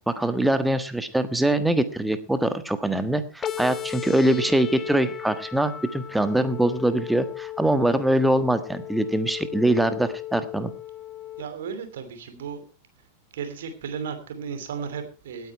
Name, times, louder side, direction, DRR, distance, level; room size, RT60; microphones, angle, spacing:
voice 1, 0.1-10.7, right 1 dB, 5° right, 11 dB, 1.4 m, -23 dB
sound 1, 3.4-11.4, left 12 dB, 25° left, 0.7 m, -36 dB
voice 2, 11.4-12.6 13.3-15.5, right 6 dB, 60° right, 8 dB, 2.8 m, -34 dB
17.5 x 9.3 x 4.5 m, 0.35 s
figure-of-eight pair, 90°, 0 cm